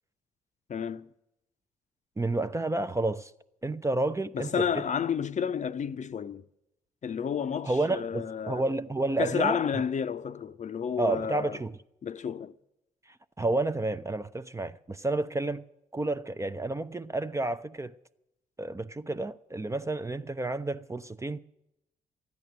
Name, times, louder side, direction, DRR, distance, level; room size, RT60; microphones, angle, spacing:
voice 1, 0.7-1.1 4.3-6.4 7.0-8.6 9.2-11.6 12.0-12.5, left 7 dB, 40° left, 0.7 m, -31 dB
voice 2, 2.2-3.3 3.6-4.8 7.6-9.8 11.0-11.8 13.4-15.6 15.9-17.9 18.6-21.4, right 2 dB, 15° right, 0.6 m, -30 dB
14.0 x 10.5 x 8.1 m
figure-of-eight pair, 40°, 19 cm